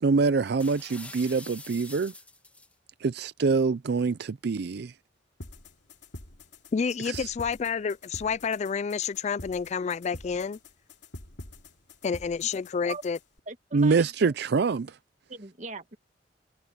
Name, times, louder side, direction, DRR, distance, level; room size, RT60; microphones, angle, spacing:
voice 1, 0.0-2.1 3.0-4.9 7.1-7.3 13.7-14.9, right 4 dB, 60° right, 0.5 m, -25 dB
sound 1, 0.6-2.7, left 2 dB, 10° left, 1.7 m, -45 dB
sound 2, 5.4-13.4, left 1 dB, 70° left, 2.8 m, -46 dB
voice 2, 6.7-10.6 12.0-13.2, left 6 dB, 40° left, 0.3 m, -29 dB
voice 3, 13.5-14.3 15.3-16.0, right 4 dB, 40° right, 1.6 m, -40 dB
head